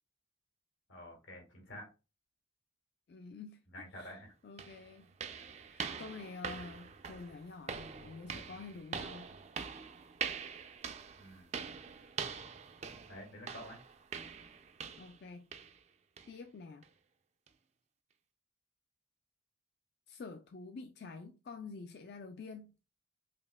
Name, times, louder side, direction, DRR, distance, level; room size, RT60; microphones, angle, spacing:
voice 1, 0.9-1.9 3.7-4.3 11.2-11.5 13.1-13.8, equal, 90° left, 1.6 m, -49 dB
voice 2, 3.1-3.6 3.9-5.1 5.7-9.3 15.0-15.5 16.3-16.9 20.1-22.8, left 4 dB, 55° left, 0.3 m, -48 dB
sound 1, 4.0-4.1 4.6-15.2 15.5-15.8 16.2-16.3 16.8-16.9 17.5-17.6, right 6 dB, 35° right, 0.3 m, -44 dB
5.1 x 2.7 x 2.2 m
head